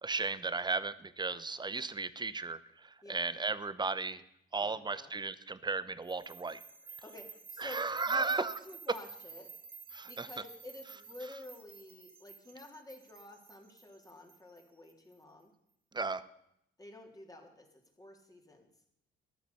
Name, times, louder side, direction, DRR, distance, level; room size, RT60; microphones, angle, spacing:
voice 1, 0.0-4.2 4.5-6.6 7.6-8.5 8.9-9.0 9.9-10.3 15.9-16.2, right 4 dB, 20° right, 15 dB, 0.9 m, -35 dB
voice 2, 4.6-5.1 7.0-9.5 10.1-15.5 16.8-18.7, left 2 dB, 20° left, 2 dB, 3.4 m, -50 dB
sound 1, 6.1-15.1, right 5 dB, 50° right, 2.4 m, -52 dB
14.0 x 10.5 x 7.0 m, 0.77 s
cardioid pair, 90°, 20 cm